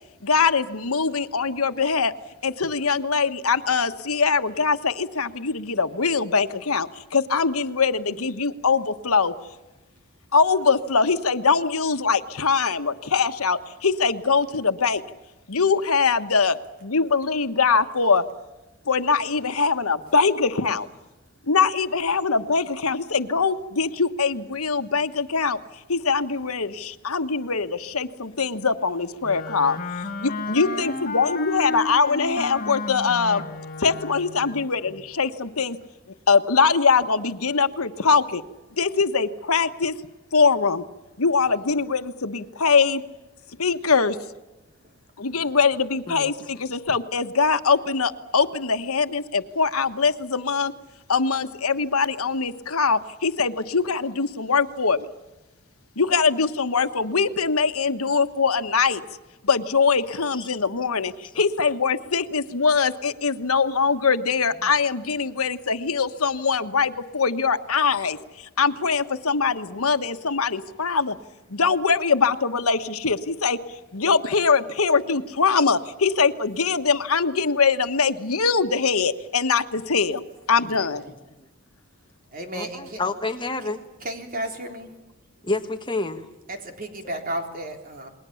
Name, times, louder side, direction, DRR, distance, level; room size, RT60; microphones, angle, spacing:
voice 1, 0.2-2.1 2.4-9.3 10.3-15.0 15.5-18.2 18.9-20.9 21.5-25.6 25.9-29.8 30.2-33.4 33.8-35.8 36.3-38.4 38.8-39.9 40.3-40.8 41.2-43.0 43.6-44.2 45.2-50.7 51.1-55.1 56.0-59.0 59.4-71.2 71.5-80.2 80.5-81.0, left 5 dB, 90° left, 9 dB, 1.3 m, -22 dB
Wind instrument woodwind instrument, 29.2-34.6, left 3 dB, 40° left, 1.6 m, -32 dB
voice 2, 30.5-30.9 45.3-45.6 80.8-81.1 82.3-83.0 84.0-84.9 86.5-88.1, right 1 dB, 40° right, 4 dB, 3.9 m, -34 dB
voice 3, 82.5-83.8 85.4-86.2, left 3 dB, 20° left, 7 dB, 1.5 m, -29 dB
29.0 x 21.5 x 7.1 m, 1.1 s
head